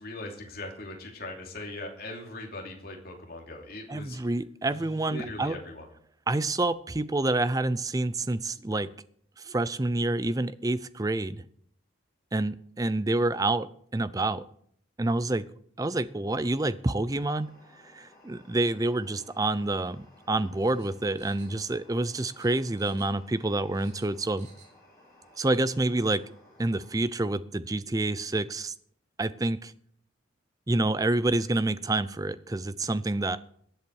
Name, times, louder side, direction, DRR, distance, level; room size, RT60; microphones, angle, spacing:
voice 1, 0.0-4.2 4.6-5.9, left 2 dB, 50° left, 1 dB, 2.8 m, -40 dB
voice 2, 3.9-5.6 6.3-8.9 9.4-11.4 12.3-14.4 15.0-15.5 15.8-17.5 17.9-24.5 25.4-26.2 26.6-28.7 29.2-29.7 30.7-33.4, right 2 dB, 20° right, 15 dB, 0.5 m, -28 dB
sound 1, 17.1-27.0, left 1 dB, 15° left, 5.6 m, -58 dB
sound 2, 20.6-21.9 22.1-23.3 23.5-24.7 25.1-25.2, right 5 dB, 35° right, 3.2 m, -58 dB
21.0 x 7.9 x 4.7 m, 0.65 s
head